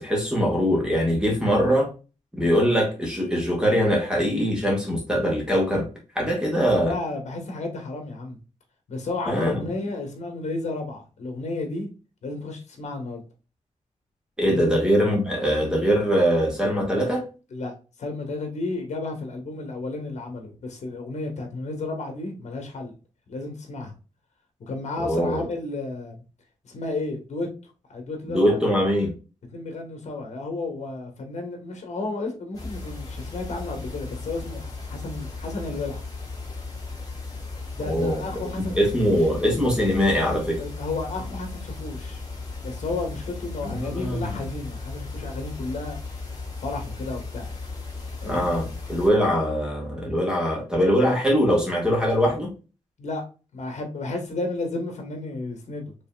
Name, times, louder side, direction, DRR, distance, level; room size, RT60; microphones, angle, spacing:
voice 1, 0.0-1.9 2.3-5.9 6.1-6.9 9.3-9.6 14.4-17.3 25.0-25.4 28.3-29.1 37.8-38.2 38.6-40.6 43.6-44.3 48.2-52.5, equal, 5° right, 1.7 m, -22 dB
voice 2, 6.8-8.4 8.9-11.9 12.2-13.2 14.4-14.7 17.5-17.7 18.0-22.9 23.3-23.9 24.7-26.2 26.6-27.5 27.9-28.6 29.5-36.0 37.7-39.1 40.6-42.2 42.6-46.0 46.6-47.5 48.2-48.5 53.0-53.2 53.5-55.8, left 3 dB, 65° left, 1.4 m, -32 dB
sound 1, 32.5-49.1, left 3 dB, 30° left, 1.4 m, -36 dB
5.3 x 3.1 x 2.4 m
wide cardioid pair, 155°, 12 cm